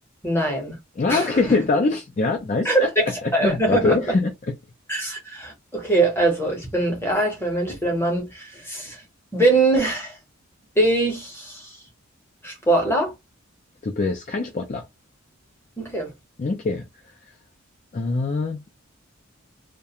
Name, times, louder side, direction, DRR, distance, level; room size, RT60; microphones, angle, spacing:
voice 1, 0.2-0.8 1.1-1.4 2.6-3.0 3.3-4.0 4.9-9.0 9.3-10.2 10.8-11.8 12.4-13.1 15.8-16.1, right 2 dB, 10° left, 0.8 m, -22 dB
voice 2, 1.0-2.9 3.2-4.5 13.8-14.8 16.4-16.8 17.9-18.8, left 3 dB, 35° left, 0.3 m, -23 dB
2.3 x 2.1 x 2.8 m
head